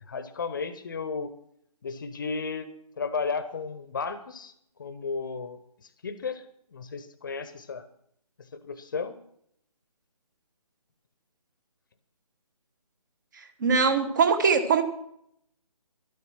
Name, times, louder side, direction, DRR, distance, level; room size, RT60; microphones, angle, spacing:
voice 1, 0.1-1.3 1.8-2.7 3.0-4.5 4.8-5.6 6.0-6.4 6.7-7.8 8.5-9.2, left 5 dB, 35° left, 12 dB, 1.0 m, -33 dB
voice 2, 13.6-14.8, right 5 dB, 30° right, 8 dB, 1.3 m, -21 dB
12.5 x 12.5 x 5.9 m, 0.71 s
figure-of-eight pair, 145°, 19 cm